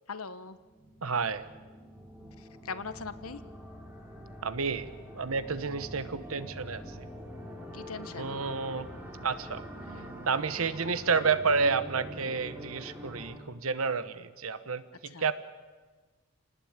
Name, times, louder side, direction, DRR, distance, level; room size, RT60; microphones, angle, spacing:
voice 1, 0.1-0.6 2.4-3.4 7.7-8.4 15.0-15.2, left 5 dB, 80° left, 12 dB, 1.3 m, -40 dB
sound 1, 0.6-13.4, equal, 10° right, 3.6 m, -45 dB
voice 2, 1.0-1.5 4.4-4.9 5.1-7.1 8.2-8.9 9.2-9.6 10.3-15.3, right 5 dB, 75° right, 13 dB, 1.1 m, -30 dB
28.5 x 19.5 x 8.8 m, 1.3 s
head